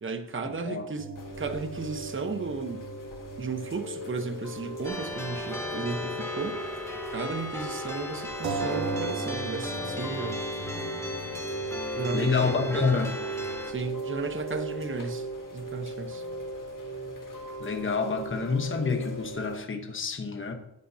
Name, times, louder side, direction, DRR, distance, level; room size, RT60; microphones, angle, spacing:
voice 1, 0.0-1.1 1.4-2.9 3.4-6.6 7.1-10.4 11.9-13.0 13.7-15.3 15.5-16.2, right 4 dB, 30° right, 1.1 m, -34 dB
sound 1, 1.0-4.8 5.1-5.2 8.4-13.7, right 3 dB, 55° right, 2.1 m, -38 dB
Chime / Rain, 1.2-19.6, right 2 dB, 45° left, 2.0 m, -38 dB
sound 2, 4.8-13.7, left 2 dB, 5° left, 2.6 m, -36 dB
voice 2, 11.9-13.1 17.6-20.5, left 4 dB, 30° left, 1.1 m, -28 dB
14.5 x 9.2 x 2.8 m
cardioid pair, 90°, 43 cm